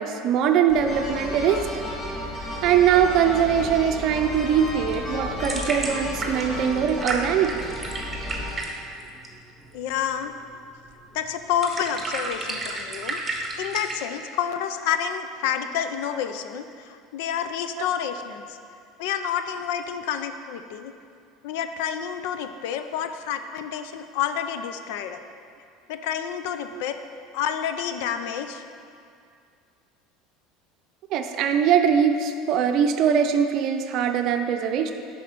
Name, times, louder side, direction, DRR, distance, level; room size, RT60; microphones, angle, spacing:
voice 1, 0.0-1.7 2.6-7.7 17.8-17.9 26.7-26.8 31.1-34.9, right 8 dB, 55° right, 6 dB, 0.5 m, -22 dB
sound 1, 0.7-8.6, left 1 dB, 35° left, 1.8 m, -33 dB
sound 2, 4.9-14.0, right 2 dB, 15° right, 1.2 m, -33 dB
voice 2, 9.7-10.3 11.1-18.6 19.0-20.9 21.4-25.2 25.9-27.0 27.3-28.6, left 8 dB, 75° left, 9 dB, 0.5 m, -29 dB
6.6 x 5.2 x 6.7 m, 2.3 s
supercardioid pair, 100°, 0 cm